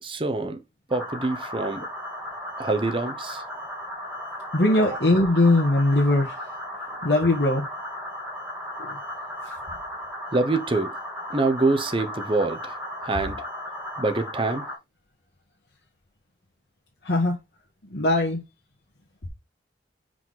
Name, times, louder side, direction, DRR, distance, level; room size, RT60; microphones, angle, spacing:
voice 1, 0.0-0.6 0.9-1.8 2.6-3.4 6.9-7.0 10.3-10.9 11.3-13.4 14.0-14.6, right 3 dB, 30° right, 0.9 m, -25 dB
sound 1, 0.9-14.8, left 1 dB, 10° right, 2.6 m, -35 dB
voice 2, 4.5-6.4 7.0-7.6 8.8-9.0 17.0-17.4 17.9-18.4, left 2 dB, 65° left, 1.4 m, -20 dB
5.9 x 5.0 x 3.8 m
head